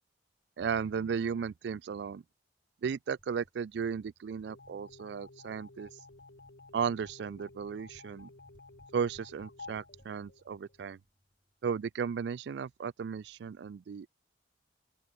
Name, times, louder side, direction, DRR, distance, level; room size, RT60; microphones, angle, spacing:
voice 1, 0.6-2.2 2.8-5.9 6.7-8.3 8.9-11.0 11.6-14.1, right 6 dB, 70° right, 0.3 m, -35 dB
sound 1, 3.2-11.8, equal, 25° right, 5.9 m, -65 dB
sound 2, 4.5-11.0, left 3 dB, 70° left, 1.8 m, -53 dB
open air
head